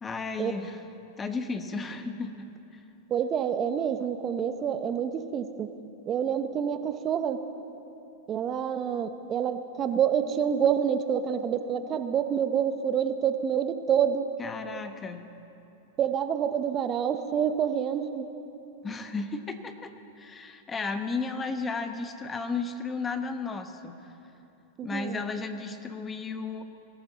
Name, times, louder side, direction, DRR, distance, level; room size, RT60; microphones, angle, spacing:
voice 1, 0.0-0.8 1.2-2.8 14.4-15.2 18.8-19.9 20.2-24.0 24.8-26.6, left 4 dB, 20° left, 8 dB, 1.0 m, -34 dB
voice 2, 3.1-5.7 6.1-7.4 8.3-14.3 16.0-18.3 24.8-25.2, right 8 dB, 30° right, 9 dB, 1.0 m, -27 dB
22.5 x 14.0 x 4.2 m, 2.9 s
hypercardioid pair, 100°, 0 cm